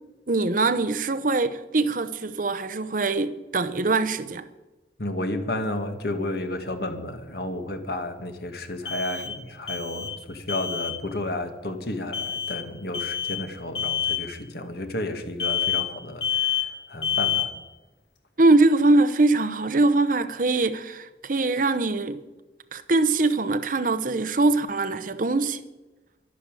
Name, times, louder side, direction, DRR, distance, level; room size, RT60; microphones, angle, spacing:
voice 1, 0.3-4.4 18.4-22.2 22.7-25.6, right 2 dB, 50° right, 0.8 m, -22 dB
voice 2, 5.0-17.5, left 1 dB, 60° left, 2.0 m, -32 dB
sound 1, 5.6-5.7 8.9-10.2 10.5-11.0 12.1-12.6 12.9-13.4 13.8-14.3 15.4-16.0 16.2-16.8 17.0-17.6, left 9 dB, 85° left, 2.1 m, -27 dB
12.0 x 11.5 x 9.0 m
head